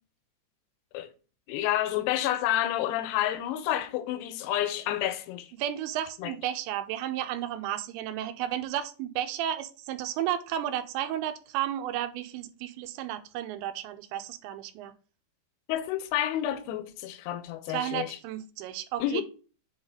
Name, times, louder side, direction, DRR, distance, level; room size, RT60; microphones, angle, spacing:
voice 1, 1.5-5.5 6.2-6.3 15.7-18.2 19.0-19.2, left 12 dB, 85° left, 2.4 m, -29 dB
voice 2, 5.6-14.9 17.7-19.2, right 11 dB, 85° right, 2.8 m, -33 dB
7.9 x 4.0 x 3.6 m
omnidirectional pair, 5.3 m